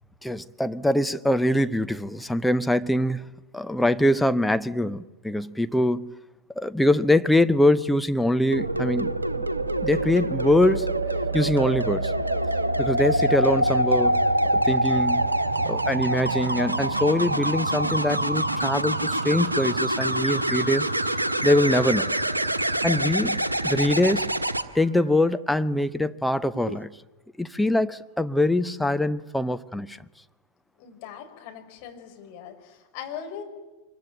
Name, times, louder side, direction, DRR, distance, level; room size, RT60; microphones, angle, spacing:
voice 1, 0.2-3.2 3.5-6.1 6.6-9.5 9.8-10.9 11.3-12.1 12.8-14.2 14.5-15.3 15.7-20.9 21.4-22.1 22.8-24.3 24.7-26.9 27.4-30.0, left 1 dB, 5° left, 0.8 m, -23 dB
sound 1, 8.5-24.6 26.5-26.8, right 1 dB, 80° right, 1.3 m, -25 dB
voice 2, 30.8-33.4, left 8 dB, 45° left, 5.1 m, -40 dB
25.0 x 22.5 x 9.2 m
figure-of-eight pair, 90°, 0 cm